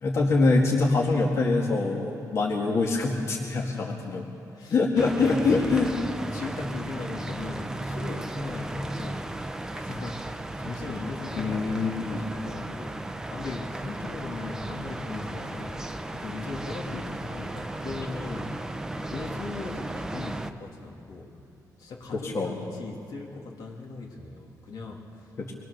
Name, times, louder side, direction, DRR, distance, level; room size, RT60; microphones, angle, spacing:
voice 1, 0.0-4.2 4.7-5.9 11.3-12.3 22.2-22.7 25.4-25.5, left 3 dB, 45° left, -1 dB, 1.9 m, -24 dB
voice 2, 3.6-4.8 5.2-5.9 6.3-9.3 9.7-15.8 16.1-18.7 19.1-21.4 21.8-25.3, left 3 dB, 85° left, 0 dB, 3.1 m, -38 dB
sound 1, 4.9-20.5, right 1 dB, 10° right, 0.7 m, -35 dB
24.5 x 20.5 x 6.6 m, 2.8 s
wide cardioid pair, 165°, 7 cm